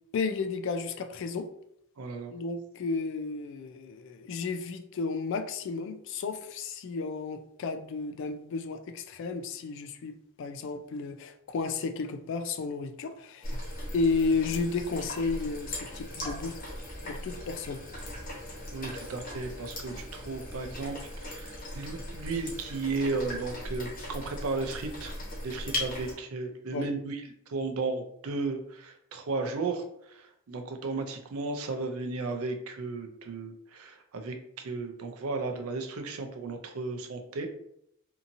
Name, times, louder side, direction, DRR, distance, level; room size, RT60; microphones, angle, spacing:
voice 1, 0.1-1.5 2.3-13.6 13.9-16.6 17.0-17.8 26.7-26.9, left 4 dB, 60° left, 0.3 m, -32 dB
voice 2, 2.0-2.3 18.7-21.0 21.2-25.1 25.4-27.2 27.5-37.5, right 3 dB, 85° right, 0.5 m, -34 dB
sound 1, 13.4-26.1, left 1 dB, 40° left, 0.8 m, -39 dB
2.8 x 2.6 x 2.5 m
head